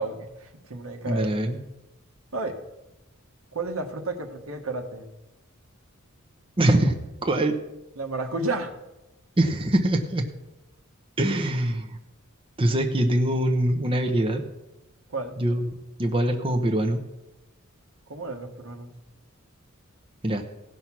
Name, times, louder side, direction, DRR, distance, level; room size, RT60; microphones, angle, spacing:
voice 1, 0.0-1.4 2.3-2.6 3.5-5.1 7.9-8.7 15.1-15.3 18.1-18.9, right 2 dB, 75° right, 4 dB, 1.4 m, -32 dB
voice 2, 1.1-1.6 6.6-6.9 7.2-7.6 9.4-10.2 11.2-12.0 12.6-14.4 15.4-17.0 20.2-20.4, right 1 dB, 25° right, 3 dB, 0.9 m, -23 dB
16.5 x 5.7 x 6.1 m, 0.98 s
head